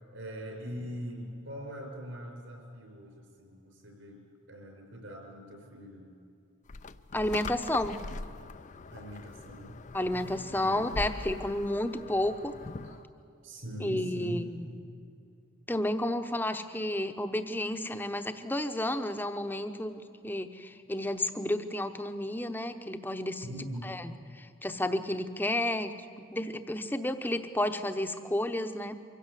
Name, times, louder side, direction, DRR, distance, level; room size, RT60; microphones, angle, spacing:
voice 1, 0.1-4.2 4.5-6.1 8.9-9.8 10.5-10.7 12.8-13.1 13.4-14.5 23.4-24.0, equal, 70° right, 2 dB, 5.6 m, -42 dB
sound 1, 6.7-13.0, left 3 dB, 35° left, 0.5 m, -42 dB
voice 2, 7.1-8.0 9.9-12.5 12.8-12.9 13.8-14.7 15.7-23.4 23.8-28.9, left 1 dB, 10° left, 8 dB, 0.9 m, -31 dB
24.0 x 16.5 x 8.3 m, 2.6 s
head